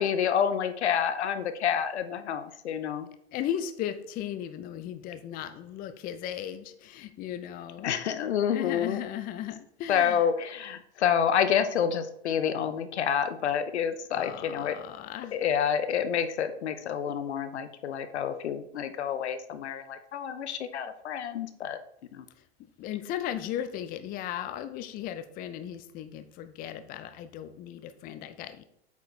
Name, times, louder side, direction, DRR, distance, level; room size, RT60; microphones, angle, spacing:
voice 1, 0.0-3.1 7.8-9.0 9.9-14.8 15.3-21.8 22.1-22.2, left 8 dB, 85° left, 10 dB, 0.8 m, -28 dB
voice 2, 3.3-7.9 8.5-10.2 14.1-15.4 22.6-28.6, left 10 dB, 25° left, 11 dB, 0.5 m, -36 dB
8.1 x 4.5 x 3.2 m, 0.72 s
hypercardioid pair, 110°, 33 cm